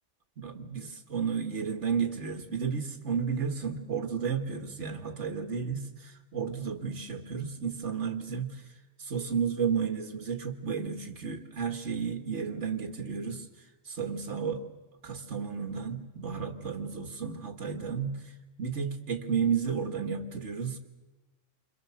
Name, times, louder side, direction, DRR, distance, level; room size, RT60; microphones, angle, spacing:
voice 1, 0.4-8.6 9.0-13.5 13.8-14.6 15.0-18.3 18.6-20.8, right 6 dB, 75° right, 6 dB, 2.3 m, -32 dB
29.0 x 26.5 x 7.4 m, 1.1 s
omnidirectional pair, 1.2 m